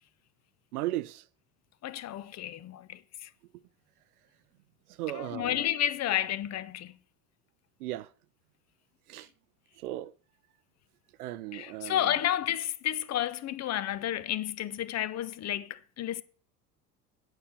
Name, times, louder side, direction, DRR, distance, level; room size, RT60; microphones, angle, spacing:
voice 1, 0.7-1.2 5.0-5.7 7.8-8.1 9.1-9.3 9.8-10.1 11.2-12.1, right 15 dB, 70° right, 0.6 m, -36 dB
voice 2, 1.8-3.3 5.1-6.9 11.5-16.2, left 11 dB, 35° left, 0.8 m, -31 dB
9.0 x 6.7 x 6.9 m
figure-of-eight pair, 65°, 47 cm